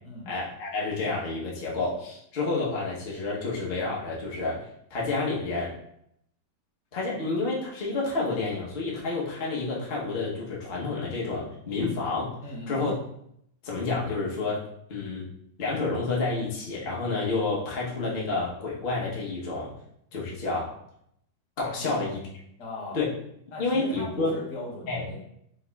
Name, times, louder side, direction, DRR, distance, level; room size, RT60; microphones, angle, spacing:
voice 1, 0.3-5.7 6.9-12.3 12.7-12.9 13.6-14.6 14.9-15.3 15.6-19.8 20.1-20.7 21.6-22.2 22.9-23.1 23.6-24.3 24.9-25.0, left 3 dB, 40° left, -4 dB, 0.9 m, -29 dB
voice 2, 12.4-12.9 21.8-22.0 22.6-23.0 23.5-25.2, left 1 dB, 75° left, -3 dB, 1.8 m, -38 dB
4.6 x 4.2 x 2.3 m, 0.72 s
omnidirectional pair, 1.9 m